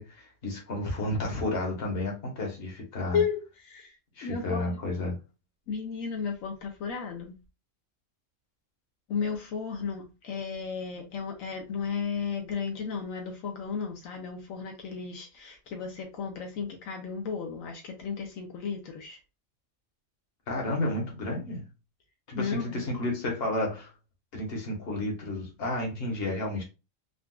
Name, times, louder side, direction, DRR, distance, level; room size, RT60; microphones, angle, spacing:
voice 1, 0.0-3.2 4.1-5.2 20.5-21.7 22.3-23.9 24.3-26.6, left 1 dB, 50° left, 1.2 m, -31 dB
voice 2, 3.1-4.8 5.7-7.4 9.1-19.2 22.3-22.8, left 6 dB, 80° left, 1.1 m, -34 dB
3.8 x 2.3 x 2.2 m
omnidirectional pair, 1.4 m